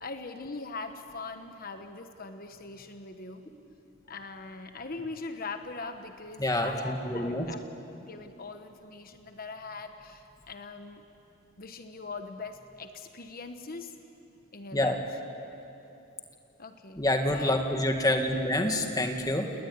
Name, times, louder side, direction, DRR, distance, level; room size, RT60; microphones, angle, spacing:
voice 1, 0.0-3.4 4.1-7.6 8.0-11.1 11.6-13.9 14.5-15.0 16.6-17.5, left 3 dB, 45° left, 7 dB, 1.2 m, -41 dB
voice 2, 6.4-7.5 14.7-15.0 17.0-19.5, left 1 dB, 20° left, 4 dB, 2.0 m, -27 dB
29.5 x 19.5 x 9.6 m, 2.9 s
head